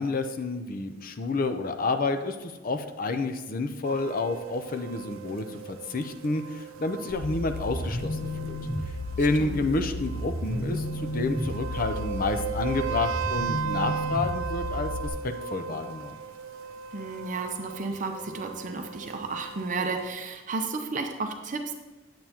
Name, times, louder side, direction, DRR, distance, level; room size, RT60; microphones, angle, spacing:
voice 1, 0.0-8.6 9.2-14.9 15.5-16.1, left 3 dB, 45° left, 8 dB, 0.5 m, -29 dB
sound 1, 3.8-20.1, right 7 dB, 90° right, 0.4 m, -37 dB
sound 2, 7.1-15.1, left 1 dB, 80° left, 1.4 m, -33 dB
voice 2, 16.9-21.7, right 3 dB, 40° right, 4 dB, 0.6 m, -32 dB
9.0 x 7.7 x 2.9 m, 1.2 s
head